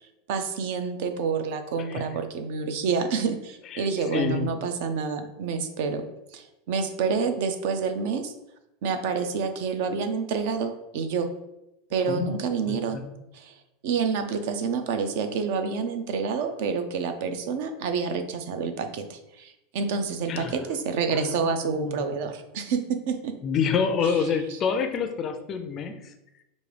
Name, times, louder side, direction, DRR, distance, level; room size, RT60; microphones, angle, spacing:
voice 1, 0.3-6.0 6.3-8.3 8.8-11.3 11.9-13.0 13.3-13.5 13.8-23.3, right 5 dB, 60° right, 8 dB, 0.5 m, -28 dB
voice 2, 4.1-4.5 12.1-12.3 12.7-13.0 20.3-20.6 21.1-22.0 23.4-26.1, left 6 dB, 25° left, 7 dB, 0.4 m, -28 dB
5.2 x 2.6 x 3.3 m, 0.90 s
supercardioid pair, 165°, 0 cm